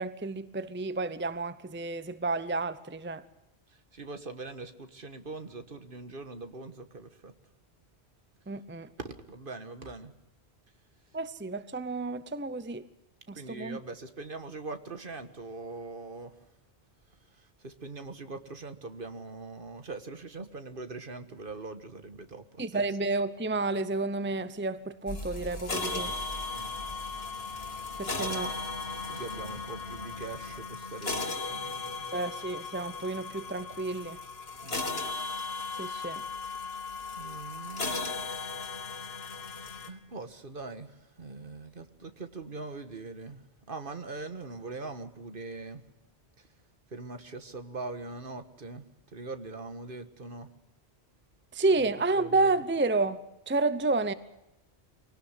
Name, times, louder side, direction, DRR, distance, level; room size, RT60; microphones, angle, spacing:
voice 1, 0.0-3.2 8.5-8.9 11.1-12.8 13.3-13.8 22.6-26.1 28.0-28.5 32.1-34.2 35.7-36.2 51.5-54.1, right 3 dB, 10° right, 14 dB, 0.7 m, -30 dB
voice 2, 3.9-7.3 9.0-10.1 13.3-16.4 17.4-22.8 26.5-26.7 29.1-32.1 34.6-34.9 37.2-38.1 39.9-45.8 46.9-48.8 49.1-50.5 51.7-51.9 52.2-52.5, right 3 dB, 55° right, 9 dB, 1.7 m, -42 dB
sound 1, 25.1-39.9, left 3 dB, 65° left, 2.6 m, -36 dB
sound 2, 25.1-30.6, left 2 dB, 30° right, 8.2 m, -52 dB
24.0 x 18.0 x 8.2 m, 0.91 s
omnidirectional pair, 1.1 m